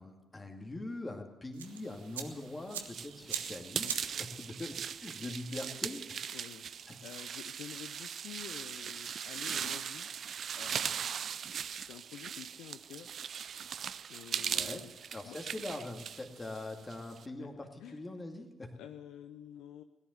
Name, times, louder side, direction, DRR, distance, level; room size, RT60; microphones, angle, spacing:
voice 1, 0.0-6.2 6.9-7.0 14.5-14.8 15.1-18.7, left 2 dB, 25° left, 4 dB, 2.3 m, -43 dB
sound 1, 1.5-8.0, right 8 dB, 85° right, 0.8 m, -46 dB
sound 2, 2.1-17.3, right 8 dB, 55° right, 0.5 m, -39 dB
voice 2, 6.3-10.1 10.5-13.1 14.1-14.9 15.2-15.4 17.4-17.5 17.8-18.0 18.4-18.5 18.8-19.8, left 10 dB, 70° left, 9 dB, 0.5 m, -50 dB
17.0 x 11.0 x 7.9 m, 1.2 s
hypercardioid pair, 45°, 0 cm